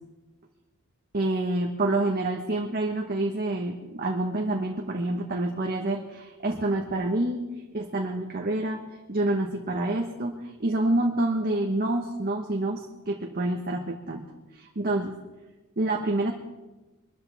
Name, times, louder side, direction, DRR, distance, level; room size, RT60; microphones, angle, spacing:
voice 1, 1.1-7.4 7.7-8.8 9.1-14.3 14.5-15.2 15.8-16.3, right 2 dB, 45° right, 1 dB, 1.2 m, -27 dB
23.0 x 13.5 x 3.5 m, 1.1 s
head